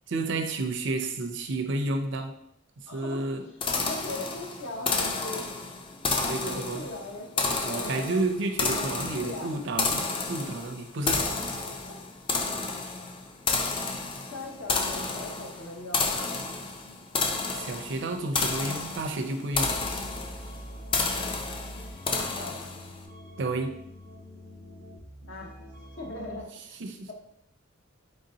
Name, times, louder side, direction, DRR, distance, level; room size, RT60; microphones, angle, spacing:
voice 1, 0.1-2.3 2.8-3.5 6.2-6.9 7.6-11.2 17.5-19.8 23.4-23.7 26.8-27.1, right 2 dB, 60° right, 5 dB, 0.5 m, -31 dB
voice 2, 2.9-3.3 3.7-5.5 6.1-8.3 8.7-9.5 11.6-12.0 14.3-16.1 22.1-22.6 25.3-25.5 26.0-26.5, left 2 dB, 70° left, 1 dB, 0.8 m, -39 dB
sound 1, 3.6-23.0, left 3 dB, 25° left, 0.4 m, -31 dB
sound 2, 19.5-26.4, equal, 50° left, 0.9 m, -44 dB
3.9 x 3.5 x 2.7 m, 0.76 s
head